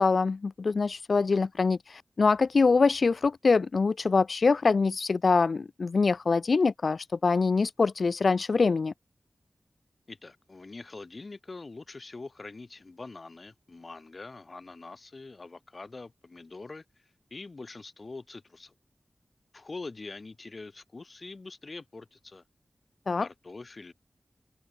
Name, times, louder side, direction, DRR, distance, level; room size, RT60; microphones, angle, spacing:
voice 1, 0.0-8.9 23.1-23.3, left 4 dB, 70° left, 0.6 m, -24 dB
voice 2, 10.1-18.7 19.5-22.4 23.2-23.9, left 3 dB, 45° left, 8.0 m, -44 dB
wide cardioid pair, 100°, 0 cm